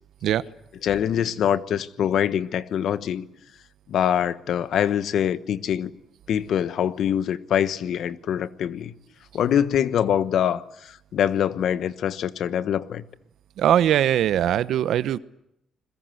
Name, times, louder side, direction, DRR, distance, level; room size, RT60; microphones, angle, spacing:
voice 1, 0.8-3.3 3.9-5.9 6.3-8.9 9.3-13.0, left 9 dB, 70° left, 1.2 m, -24 dB
voice 2, 13.6-15.2, right 11 dB, 75° right, 1.0 m, -21 dB
29.0 x 22.0 x 8.0 m
cardioid pair, 90°, 0 cm